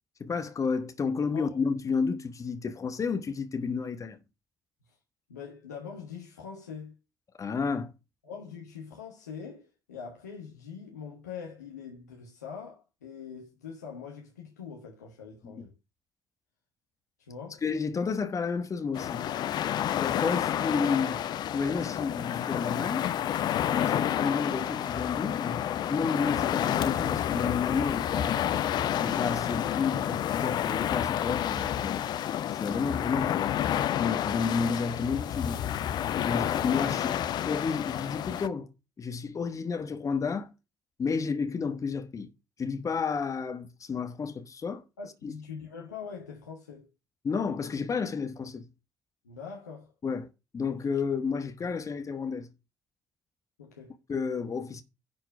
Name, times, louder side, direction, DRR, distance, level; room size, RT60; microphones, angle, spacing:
voice 1, 0.2-4.2 7.4-7.9 15.4-15.6 17.6-19.2 20.0-21.2 21.5-23.1 23.7-28.6 29.0-32.0 32.5-33.6 34.0-35.6 36.2-37.2 37.4-38.7 39.0-40.5 41.0-42.3 42.6-44.8 45.2-45.3 47.2-48.7 50.0-50.3 50.5-52.5 54.1-54.8, left 5 dB, 40° left, 1.3 m, -31 dB
voice 2, 5.3-7.0 8.2-15.7 17.2-17.6 45.0-46.9 49.2-49.9 53.6-54.0, left 6 dB, 80° left, 1.3 m, -43 dB
sound 1, 18.9-38.5, left 11 dB, 55° left, 0.7 m, -29 dB
10.5 x 4.6 x 5.8 m
figure-of-eight pair, 45°, 9 cm